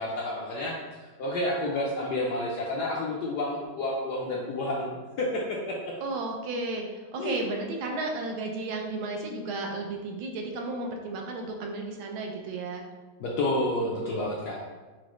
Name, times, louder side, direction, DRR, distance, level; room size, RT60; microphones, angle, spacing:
voice 1, 0.0-5.8 7.2-7.4 13.2-14.6, left 1 dB, 75° left, -3 dB, 0.9 m, -30 dB
voice 2, 6.0-12.8, right 2 dB, 85° right, 2 dB, 1.4 m, -33 dB
6.1 x 2.1 x 3.0 m, 1.3 s
omnidirectional pair, 2.2 m